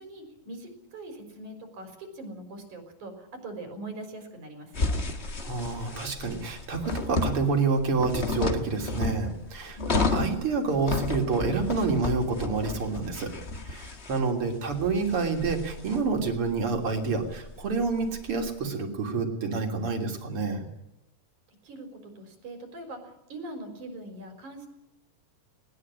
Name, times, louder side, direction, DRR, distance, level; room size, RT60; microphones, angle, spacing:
voice 1, 0.0-5.0 9.7-10.1 21.6-24.7, right 2 dB, 65° right, 6 dB, 5.8 m, -42 dB
sound 1, 4.7-18.5, left 3 dB, 35° left, 1.0 m, -32 dB
voice 2, 5.4-13.3 13.6-20.6, right 4 dB, 45° right, 4 dB, 3.8 m, -28 dB
20.5 x 20.0 x 10.0 m, 0.88 s
omnidirectional pair, 3.7 m